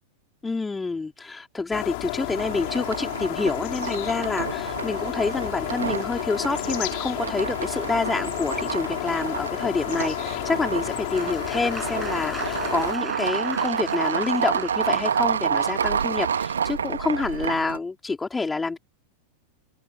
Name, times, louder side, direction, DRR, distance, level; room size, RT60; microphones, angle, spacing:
voice 1, 0.4-18.8, left 3 dB, 10° left, 4.2 m, -28 dB
sound 1, 1.7-12.9, left 29 dB, 45° left, 6.6 m, -31 dB
sound 2, 2.2-17.8, right 7 dB, 70° right, 1.8 m, -29 dB
Applause, 10.8-15.3, right 3 dB, 10° right, 7.2 m, -40 dB
figure-of-eight pair, 90°, 0 cm